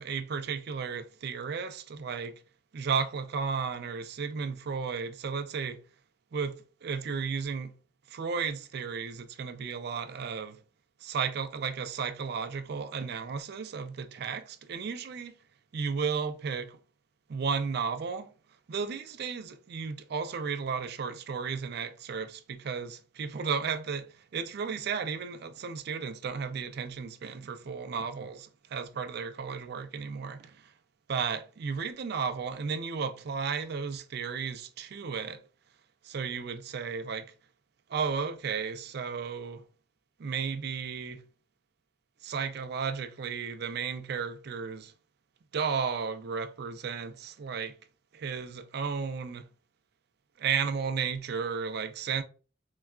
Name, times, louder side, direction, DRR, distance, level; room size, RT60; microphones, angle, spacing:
voice 1, 0.0-2.4 2.7-5.8 6.3-7.7 8.1-10.6 11.0-15.4 15.7-16.8 17.3-18.3 18.7-30.7 31.1-35.4 36.0-37.3 37.9-39.6 40.2-41.2 42.2-44.9 45.5-47.7 48.1-49.5 50.4-52.2, right 6 dB, 60° right, 0.4 m, -34 dB
3.8 x 2.3 x 2.2 m
head